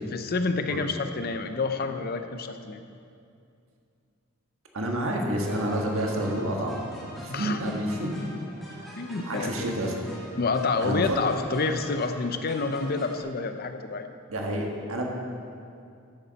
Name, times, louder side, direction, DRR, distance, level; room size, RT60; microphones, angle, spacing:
voice 1, 0.1-2.8 7.3-7.6 8.9-9.7 10.4-14.1, left 4 dB, 45° left, 8 dB, 0.6 m, -28 dB
voice 2, 4.7-6.8 7.2-8.2 8.8-9.9 10.8-11.2 14.3-15.1, right 1 dB, 75° right, 0 dB, 1.5 m, -29 dB
sound 1, 5.5-13.2, equal, ahead, 1.7 m, -44 dB
12.5 x 8.5 x 4.0 m, 2.4 s
head